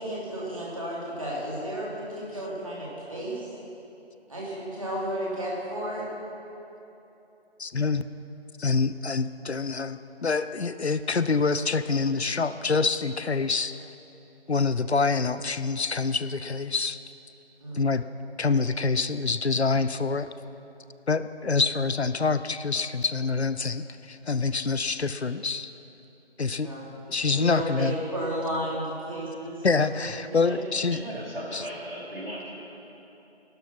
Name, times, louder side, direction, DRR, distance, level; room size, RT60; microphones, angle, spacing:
voice 1, 0.0-3.5 4.3-6.1 17.6-17.9 26.6-26.9 27.3-30.8, right 1 dB, 30° right, -6 dB, 2.9 m, -33 dB
voice 2, 7.6-8.1 8.6-13.8 14.5-17.0 17.7-18.0 18.4-20.3 21.1-25.7 26.4-26.7 27.1-28.0 29.6-31.0 31.5-31.6, left 4 dB, 75° left, 13 dB, 0.7 m, -26 dB
voice 3, 30.9-32.6, right 1 dB, 60° right, -5 dB, 4.1 m, -37 dB
15.0 x 12.0 x 6.0 m, 3.0 s
figure-of-eight pair, 170°, 33 cm